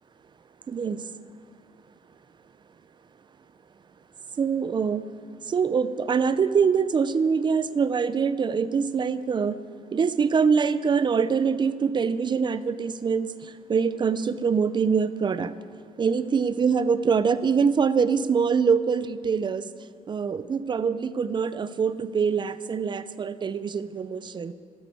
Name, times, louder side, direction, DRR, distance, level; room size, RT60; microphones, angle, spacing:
voice 1, 0.7-1.0 4.4-5.0 5.5-9.6 9.9-13.3 13.7-15.5 16.0-19.7 20.1-24.5, right 6 dB, 30° right, 14 dB, 0.6 m, -24 dB
13.5 x 9.4 x 8.3 m, 2.1 s
cardioid pair, 130°, 15 cm